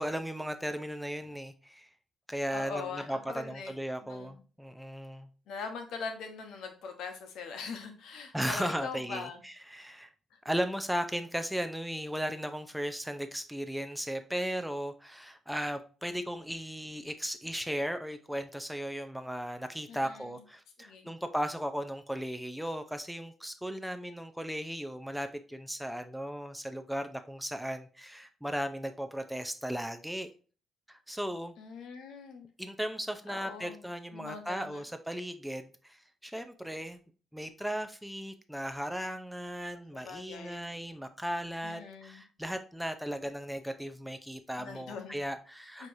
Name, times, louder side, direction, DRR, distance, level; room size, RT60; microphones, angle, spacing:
voice 1, 0.0-1.9 2.3-5.3 8.3-10.1 10.4-30.3 30.9-31.5 32.6-37.0 37.3-45.9, equal, ahead, 8 dB, 0.5 m, -36 dB
voice 2, 2.5-3.7 4.0-4.4 5.5-9.4 10.3-10.4 19.9-20.4 20.8-21.1 31.6-32.5 33.3-33.8 34.1-34.8 39.7-40.6 41.6-42.2 44.6-45.2 45.8-45.9, left 5 dB, 80° left, 5 dB, 0.9 m, -42 dB
6.2 x 2.9 x 2.6 m, 0.37 s
cardioid pair, 90°, 0 cm